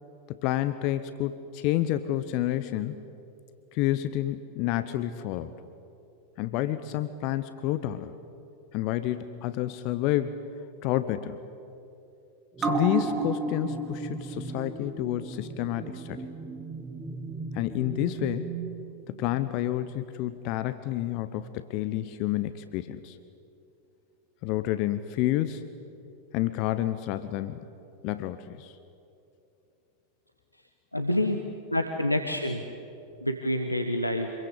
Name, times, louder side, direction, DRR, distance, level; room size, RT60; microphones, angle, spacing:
voice 1, 0.3-3.0 3.7-5.5 6.4-8.1 8.7-10.4 10.8-11.4 12.6-16.3 17.5-18.5 19.1-23.2 24.4-25.6 26.3-27.6 28.0-28.7, left 14 dB, 45° left, 12 dB, 0.9 m, -29 dB
sound 1, 12.6-19.5 19.8-19.9, right 4 dB, 20° right, 1.8 m, -34 dB
voice 2, 30.9-31.4 31.7-32.6 33.2-34.3, left 1 dB, 85° left, 5 dB, 1.4 m, -27 dB
26.5 x 22.0 x 8.4 m, 2.7 s
figure-of-eight pair, 90°, 0 cm